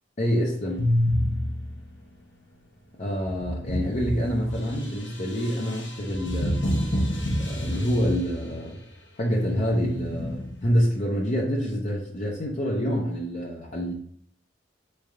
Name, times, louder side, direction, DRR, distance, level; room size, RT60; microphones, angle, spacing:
voice 1, 0.2-1.0 3.0-6.6 7.3-8.8 9.2-13.9, equal, 40° left, -3 dB, 0.6 m, -27 dB
drum effect, 0.8-2.0 3.2-8.6 9.4-10.7, left 1 dB, 70° left, 1.0 m, -28 dB
4.3 x 3.4 x 3.6 m, 0.65 s
head